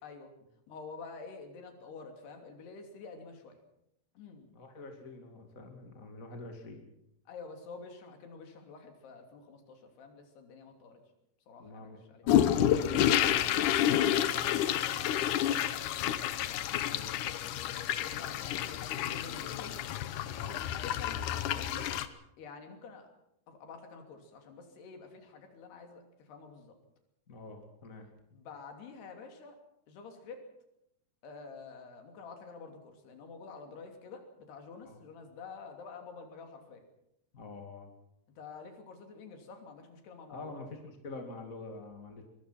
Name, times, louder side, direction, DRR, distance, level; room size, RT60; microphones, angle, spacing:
voice 1, 0.0-0.3 0.7-3.6 4.2-4.5 7.3-11.0 11.5-12.2 13.8-16.3 18.0-19.8 20.8-21.3 21.5-22.0 22.4-23.1 23.5-26.8 28.3-29.6 29.9-30.5 31.2-36.8 38.4-40.5, left 4 dB, 90° left, 4 dB, 5.0 m, -48 dB
voice 2, 4.5-6.8 11.6-14.4 16.9-17.1 20.3-20.6 27.3-28.1 34.8-35.0 37.3-37.9 40.3-42.2, left 3 dB, 25° left, 4 dB, 2.0 m, -46 dB
sound 1, 12.3-22.1, left 11 dB, 70° left, 2.0 m, -29 dB
23.0 x 22.0 x 5.9 m, 0.79 s
omnidirectional pair, 4.5 m